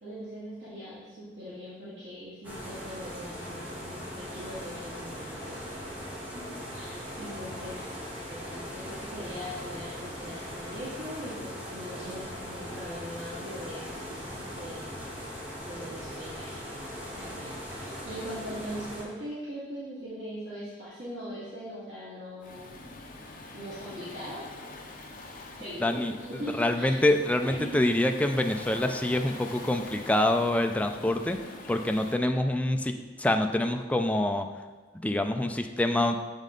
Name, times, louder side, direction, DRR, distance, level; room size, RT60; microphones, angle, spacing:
voice 1, 0.0-5.6 6.3-7.8 8.3-14.9 15.7-16.7 17.1-22.7 23.5-24.4 25.5-27.0 27.4-27.8, equal, 85° right, -12 dB, 2.3 m, -41 dB
sound 1, 2.4-19.0, equal, 10° right, 1.7 m, -39 dB
Waves surf, 22.4-32.2, left 2 dB, 50° left, 0.9 m, -44 dB
voice 2, 25.8-31.4 31.7-34.5 35.0-36.2, left 1 dB, 10° left, 5 dB, 0.3 m, -26 dB
7.4 x 5.3 x 3.8 m, 1.3 s
head